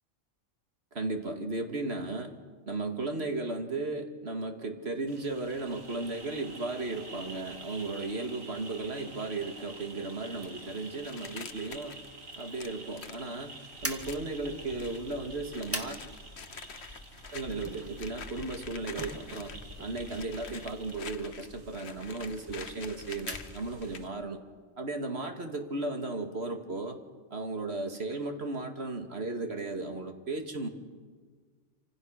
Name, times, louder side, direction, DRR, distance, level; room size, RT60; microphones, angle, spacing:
voice 1, 0.9-2.4 2.7-12.0 12.4-16.0 17.3-19.5 19.8-24.4 24.8-27.0 27.3-30.7, right 2 dB, 55° right, 5 dB, 2.3 m, -35 dB
sound 1, 5.1-24.1, right 2 dB, 85° right, 2.9 m, -49 dB
sound 2, 10.4-13.3 14.0-14.3 14.8-15.2 15.5-19.7 20.0-24.0, left 6 dB, 55° left, 1.3 m, -47 dB
sound 3, 13.8-24.1, equal, 10° right, 2.1 m, -44 dB
27.0 x 26.0 x 6.6 m, 1.5 s
omnidirectional pair, 1.3 m